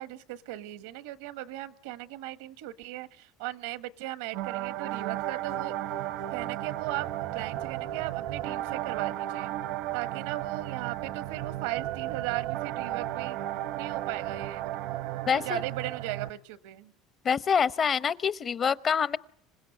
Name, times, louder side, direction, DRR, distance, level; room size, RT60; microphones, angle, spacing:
voice 1, 0.0-5.7 6.3-7.1 7.3-9.5 9.9-13.4 13.7-14.8 15.4-16.9, right 16 dB, 85° right, 1.2 m, -37 dB
sound 1, 4.3-16.3, right 14 dB, 70° right, 0.9 m, -34 dB
voice 2, 15.3-15.6 17.2-19.2, left 6 dB, 35° left, 0.9 m, -26 dB
26.5 x 17.0 x 9.2 m
supercardioid pair, 105°, 0 cm